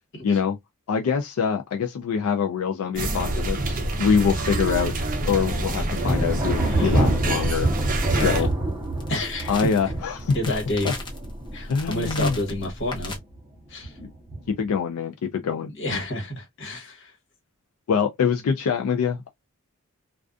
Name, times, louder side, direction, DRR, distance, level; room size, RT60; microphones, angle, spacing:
voice 1, 0.2-0.6 0.9-7.7 8.1-8.5 9.5-10.4 10.8-10.9 11.7-12.4 14.0-14.1 14.5-15.7 17.9-19.3, left 6 dB, 90° left, 0.4 m, -24 dB
sound 1, 2.9-8.4, right 2 dB, 40° right, 0.6 m, -26 dB
Thunder, 6.0-12.5 12.8-13.4 13.8-14.7, right 1 dB, 15° right, 0.8 m, -27 dB
voice 2, 6.6-7.1 8.1-8.5 9.1-9.6 10.3-10.9 11.5-13.2 13.7-13.9 15.8-17.1, left 1 dB, 60° left, 1.2 m, -29 dB
sound 2, 8.1-13.2, left 1 dB, 20° left, 0.8 m, -37 dB
2.4 x 2.4 x 2.3 m
head